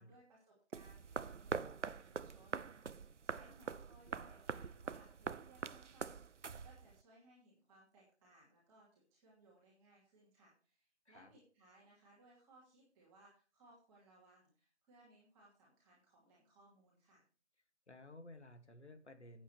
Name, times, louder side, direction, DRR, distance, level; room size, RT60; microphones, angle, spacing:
voice 1, 0.0-17.2, right 2 dB, 5° right, -6 dB, 2.5 m, -66 dB
sound 1, 0.7-7.0, right 5 dB, 85° right, 0.7 m, -44 dB
voice 2, 17.9-19.4, left 1 dB, 75° left, 8 dB, 2.3 m, -56 dB
14.0 x 8.7 x 3.3 m, 0.38 s
figure-of-eight pair, 165°, 35 cm